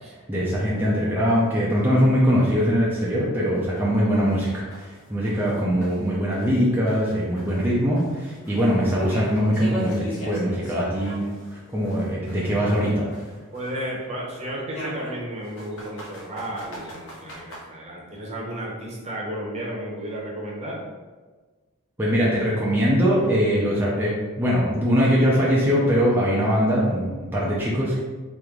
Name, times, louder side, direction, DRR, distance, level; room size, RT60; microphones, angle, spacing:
voice 1, 0.3-11.2 11.5-13.1 22.0-28.0, equal, 10° right, -6 dB, 0.5 m, -22 dB
sound 1, 0.8-0.9 1.3-1.4 1.8-1.9 2.4-2.5 3.0-3.1 3.5-3.6 4.1-6.6 6.9-11.5 11.8-13.9 14.7-17.6, equal, 70° left, 1.0 m, -39 dB
voice 2, 13.5-20.8, right 1 dB, 30° right, -4 dB, 0.8 m, -33 dB
3.1 x 3.0 x 3.6 m, 1.3 s
head